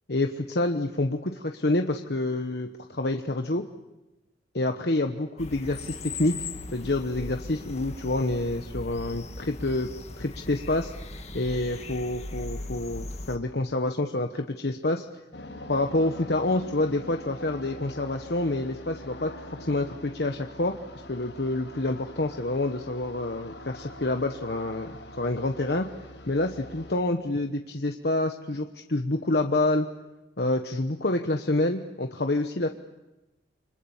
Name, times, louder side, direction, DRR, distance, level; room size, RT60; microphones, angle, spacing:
voice 1, 0.1-3.6 4.5-6.4 6.7-9.9 10.2-10.9 11.3-15.0 15.7-19.3 19.6-20.7 21.1-25.9 26.3-29.9 30.4-32.7, left 2 dB, 60° left, 5 dB, 1.1 m, -27 dB
sound 1, 5.4-13.4, left 2 dB, 35° left, 1.7 m, -38 dB
sound 2, 15.3-26.9, left 1 dB, 80° left, 6.0 m, -44 dB
28.5 x 26.0 x 7.3 m, 1.0 s
head